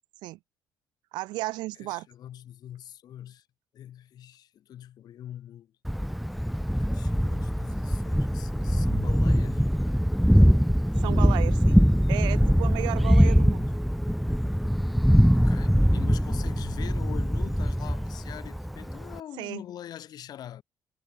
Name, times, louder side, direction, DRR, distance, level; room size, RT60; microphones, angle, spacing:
voice 1, 1.1-2.1 11.0-11.8 12.1-13.7 19.4-19.6, right 19 dB, 65° right, 1.4 m, -34 dB
voice 2, 1.8-3.5 3.7-5.7 6.8-9.7 15.3-20.6, left 11 dB, 55° left, 3.1 m, -43 dB
Thunder, 5.8-19.2, equal, ahead, 0.7 m, -23 dB
figure-of-eight pair, 45°, 8 cm